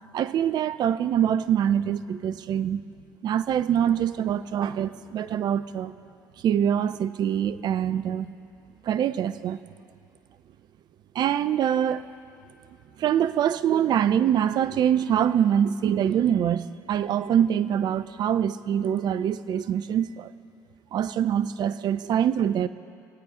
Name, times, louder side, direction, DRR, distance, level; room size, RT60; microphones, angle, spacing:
voice 1, 0.1-2.8 3.2-5.9 6.4-8.3 8.8-9.6 11.1-12.0 13.0-20.3 20.9-22.7, right 9 dB, 50° right, 14 dB, 0.6 m, -24 dB
25.5 x 8.6 x 5.0 m, 2.4 s
hypercardioid pair, 65°, 9 cm